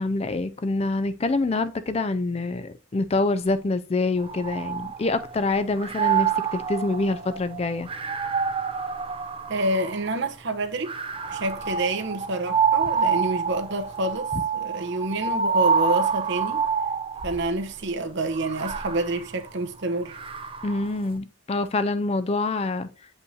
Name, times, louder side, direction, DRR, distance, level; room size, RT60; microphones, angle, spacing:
voice 1, 0.0-7.9 20.6-22.9, left 2 dB, 30° left, 0.4 m, -26 dB
sound 1, 4.2-5.4 5.8-10.2 10.8-17.5 18.3-20.9, right 6 dB, 25° right, 0.5 m, -27 dB
voice 2, 9.5-11.0 11.3-16.6 17.2-20.2, right 2 dB, 55° right, 0.9 m, -28 dB
7.9 x 5.4 x 2.7 m
head